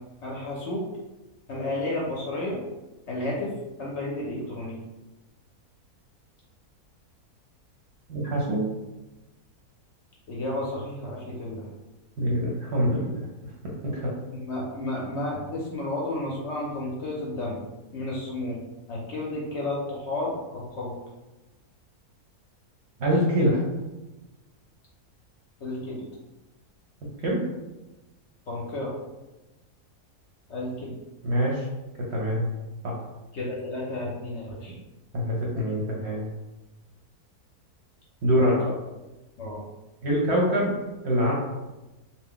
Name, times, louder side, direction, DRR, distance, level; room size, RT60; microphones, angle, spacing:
voice 1, 0.2-0.8 1.5-2.6 3.1-3.5 3.8-4.8 10.3-11.7 14.4-17.6 17.9-18.6 18.9-20.9 25.6-26.0 28.5-28.9 30.5-30.9 33.3-34.7 38.3-38.4 39.4-39.6, left 2 dB, 60° left, -4 dB, 0.8 m, -32 dB
voice 2, 8.1-8.6 12.2-13.2 13.9-14.1 23.0-23.6 27.2-27.4 31.2-31.7 32.1-32.4 32.8-33.0 35.1-36.2 38.2-38.7 40.0-40.7 41.0-41.3, equal, 55° right, -4 dB, 0.8 m, -24 dB
2.8 x 2.1 x 3.6 m, 1.1 s
omnidirectional pair, 1.6 m